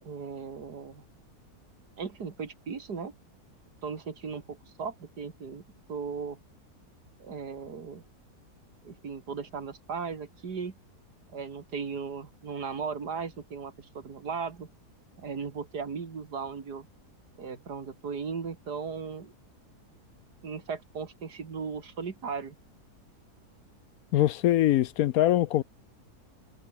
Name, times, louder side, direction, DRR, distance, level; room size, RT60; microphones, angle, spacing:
voice 1, 0.0-1.0 2.0-3.1 3.8-5.6 5.9-6.4 7.2-8.0 8.8-10.7 11.3-14.7 15.2-16.9 17.4-19.3 20.4-22.6, right 5 dB, 90° right, 2.8 m, -37 dB
voice 2, 24.1-25.6, left 13 dB, 70° left, 1.0 m, -23 dB
omnidirectional pair, 1.7 m